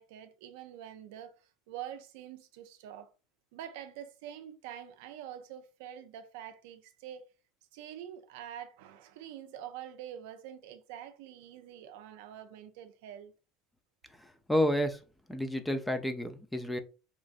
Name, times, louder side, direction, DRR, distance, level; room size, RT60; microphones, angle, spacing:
voice 1, 0.0-1.3 1.7-3.1 3.5-7.3 7.7-13.3, right 10 dB, 80° right, 0.4 m, -46 dB
voice 2, 14.2-15.0 15.3-16.8, left 1 dB, 5° left, 0.4 m, -30 dB
3.0 x 2.5 x 2.4 m
supercardioid pair, 105°, 0 cm